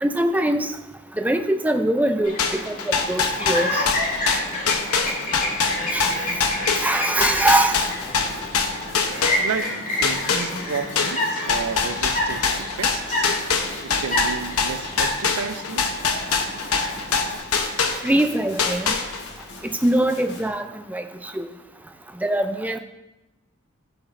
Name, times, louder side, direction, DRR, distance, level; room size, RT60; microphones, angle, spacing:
voice 1, 0.0-0.7 1.2-2.4 2.6-3.8 5.9-6.1 6.8-7.8 18.0-18.9 19.6-21.0 21.3-21.5 22.2-22.8, right 1 dB, 5° right, 7 dB, 0.5 m, -22 dB
Chirp tweet, 2.2-17.4, left 1 dB, 40° left, 2.4 m, -29 dB
sound 1, 2.4-9.7 10.0-18.3 18.6-19.4, left 5 dB, 80° left, 0.9 m, -23 dB
sound 2, 7.7-20.5, left 3 dB, 55° left, 1.5 m, -44 dB
voice 2, 9.4-13.3 13.8-16.0, right 5 dB, 75° right, 12 dB, 0.5 m, -32 dB
15.0 x 5.9 x 2.6 m, 0.98 s
head